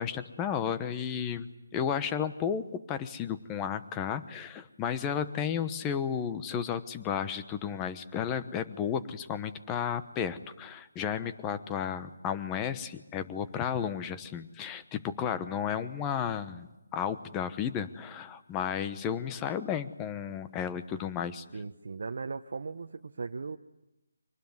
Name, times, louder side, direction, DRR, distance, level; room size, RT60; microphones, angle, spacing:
voice 1, 0.0-16.7 16.9-21.4, left 8 dB, 15° left, 11 dB, 1.1 m, -33 dB
voice 2, 21.5-23.6, right 4 dB, 60° right, 5 dB, 0.9 m, -38 dB
25.0 x 19.5 x 9.5 m, 0.98 s
figure-of-eight pair, 160°, 0 cm